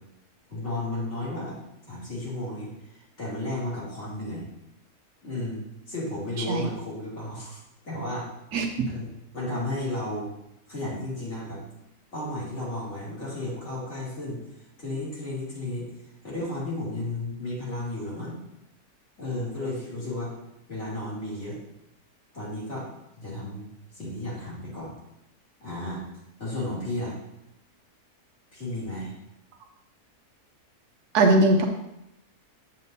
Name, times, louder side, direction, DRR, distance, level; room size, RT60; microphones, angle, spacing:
voice 1, 0.5-1.6 1.9-2.7 3.2-4.5 5.2-5.6 5.9-8.3 8.8-9.1 9.3-10.3 10.7-11.6 12.1-14.4 14.8-15.8 16.2-18.4 19.2-20.3 20.7-21.6 22.3-22.9 23.2-24.9 25.6-26.0 26.4-27.2 28.5-29.1, left 1 dB, 45° left, -7 dB, 3.0 m, -33 dB
voice 2, 31.1-31.7, right 2 dB, 80° right, 3 dB, 1.2 m, -19 dB
8.2 x 7.5 x 2.7 m, 0.86 s
omnidirectional pair, 1.6 m